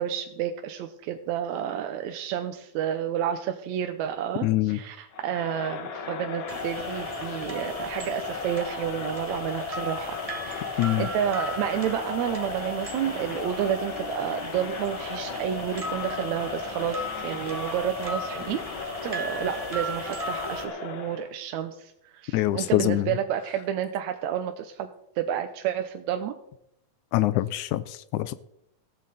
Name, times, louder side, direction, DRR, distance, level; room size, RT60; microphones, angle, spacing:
voice 1, 0.0-10.2 10.4-18.6 19.0-24.9 25.2-26.3, right 10 dB, 75° right, 7 dB, 2.0 m, -30 dB
voice 2, 4.4-4.8 10.8-11.1 22.3-23.1 27.1-28.3, left 15 dB, 80° left, 15 dB, 2.0 m, -24 dB
Crowd, 5.1-21.3, left 5 dB, 50° left, 1.6 m, -35 dB
sound 1, 6.5-20.6, equal, 15° right, 1.5 m, -38 dB
15.0 x 14.0 x 4.1 m, 0.78 s
omnidirectional pair, 3.6 m